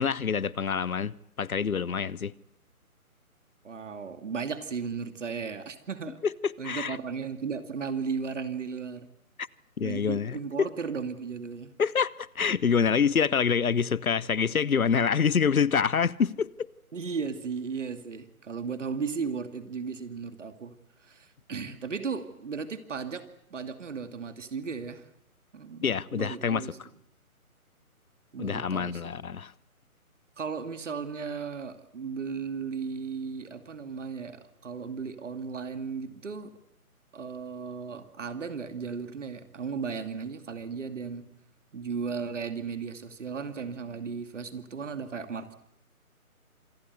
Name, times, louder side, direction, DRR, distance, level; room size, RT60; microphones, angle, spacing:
voice 1, 0.0-2.3 6.2-7.0 9.8-10.7 11.8-16.5 25.8-26.7 28.4-29.5, left 6 dB, 70° left, 0.9 m, -26 dB
voice 2, 3.6-6.2 6.6-9.1 9.8-11.7 16.9-20.7 21.0-23.2 23.5-25.0 25.5-26.8 28.3-29.0 30.4-36.5 37.1-41.2 41.7-45.6, right 5 dB, 55° right, 2.5 m, -35 dB
26.5 x 19.5 x 8.2 m
figure-of-eight pair, 145°, 44 cm